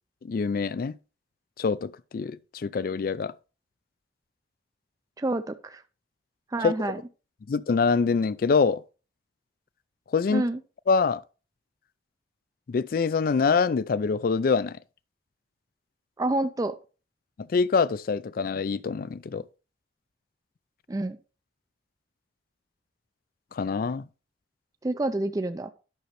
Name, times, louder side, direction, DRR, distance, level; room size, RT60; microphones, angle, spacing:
voice 1, 0.2-0.9 1.6-3.3 6.6-6.9 7.5-8.8 10.1-10.4 10.9-11.2 12.7-14.8 17.5-19.4 23.5-24.1, left 5 dB, 50° left, 0.4 m, -25 dB
voice 2, 5.2-5.8 6.5-7.0 10.3-10.6 16.2-16.8 20.9-21.2 24.8-25.7, right 2 dB, 20° right, 0.4 m, -28 dB
10.5 x 6.3 x 3.1 m
head